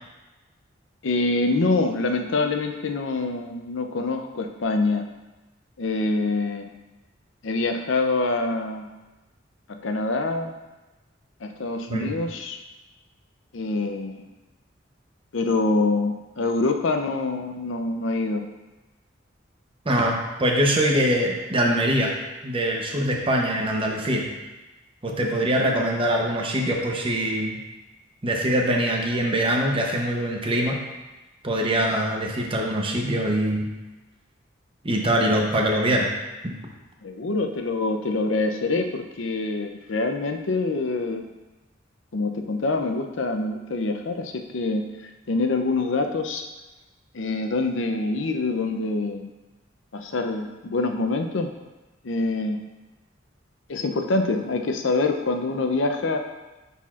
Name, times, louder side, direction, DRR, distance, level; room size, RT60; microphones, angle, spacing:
voice 1, 1.0-5.1 5.8-6.7 7.4-8.9 9.7-10.6 11.4-12.6 13.5-14.3 15.3-18.5 37.0-41.2 42.1-46.4 47.1-49.3 49.9-51.5 52.0-52.6 53.7-56.2, left 3 dB, 75° left, 5 dB, 0.6 m, -25 dB
voice 2, 19.8-22.1 22.4-24.2 25.0-27.6 28.2-30.8 31.4-33.7 34.8-36.1 36.4-36.6, right 1 dB, 30° right, 0 dB, 0.8 m, -23 dB
9.8 x 4.2 x 2.4 m, 1.1 s
head